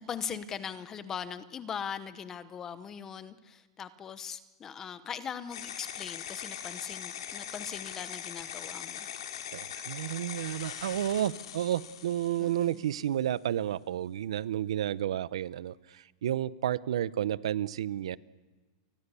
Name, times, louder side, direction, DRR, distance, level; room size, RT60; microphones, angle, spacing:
voice 1, 0.0-9.1 12.4-12.8, left 7 dB, 15° left, 0.9 m, -40 dB
sound 1, 5.5-13.0, left 9 dB, 70° left, 3.2 m, -41 dB
voice 2, 9.5-18.2, right 11 dB, 75° right, 0.8 m, -31 dB
29.0 x 20.0 x 7.0 m
supercardioid pair, 180°, 3 cm